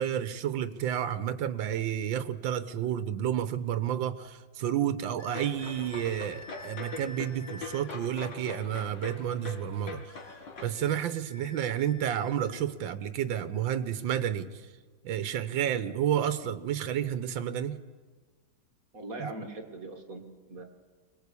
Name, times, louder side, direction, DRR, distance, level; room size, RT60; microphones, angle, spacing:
voice 1, 0.0-10.0 10.6-14.6 15.0-17.8 19.2-19.3, right 10 dB, 80° right, 12 dB, 1.7 m, -30 dB
sound 1, 5.2-7.9 10.1-12.6, left 3 dB, 40° left, 2.0 m, -50 dB
sound 2, 5.3-10.6, left 4 dB, 75° left, 3.1 m, -42 dB
voice 2, 18.9-20.7, right 2 dB, 45° right, 4 dB, 2.4 m, -41 dB
25.0 x 19.5 x 8.4 m, 1.4 s
omnidirectional pair, 2.0 m